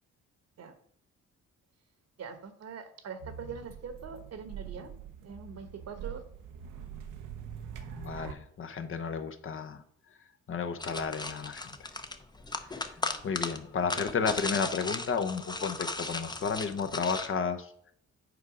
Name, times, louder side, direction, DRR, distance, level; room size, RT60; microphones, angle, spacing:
voice 1, 2.2-4.9 5.2-6.2, right 6 dB, 55° right, 9 dB, 1.2 m, -43 dB
sound 1, 3.2-8.3, right 8 dB, 85° right, 0.9 m, -44 dB
voice 2, 7.8-9.8 10.5-11.7 12.7-13.0 13.2-17.9, left 5 dB, 45° left, 7 dB, 0.9 m, -32 dB
sound 2, 10.8-17.3, left 3 dB, 15° left, 0.7 m, -36 dB
8.1 x 4.7 x 5.0 m, 0.66 s
cardioid pair, 90°, 30 cm